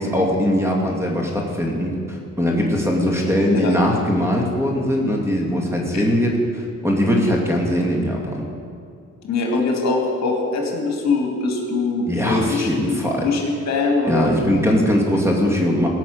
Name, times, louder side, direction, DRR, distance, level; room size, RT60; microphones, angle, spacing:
voice 1, 0.0-8.4 12.1-13.3 14.0-15.9, equal, 10° right, 0 dB, 2.3 m, -20 dB
voice 2, 9.2-14.3, left 3 dB, 60° left, 1 dB, 2.5 m, -22 dB
17.0 x 6.0 x 8.0 m, 2.3 s
cardioid pair, 90°, 30 cm